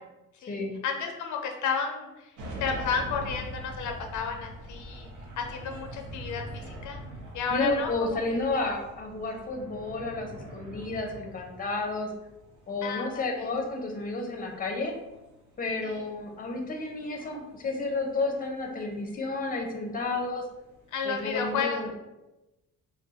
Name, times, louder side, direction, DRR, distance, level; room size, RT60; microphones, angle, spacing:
voice 1, 0.4-2.3 2.6-5.1 5.4-7.0 7.3-8.2 12.8-13.5 15.8-16.0 20.9-21.9, left 5 dB, 75° left, 3 dB, 0.5 m, -32 dB
sound 1, 2.4-21.5, right 1 dB, 85° right, 0.7 m, -44 dB
voice 2, 7.5-12.1 12.7-15.0 15.6-20.4 21.0-21.9, left 3 dB, 30° left, 2 dB, 0.6 m, -31 dB
2.3 x 2.2 x 3.9 m, 1.0 s
cardioid pair, 90°, 30 cm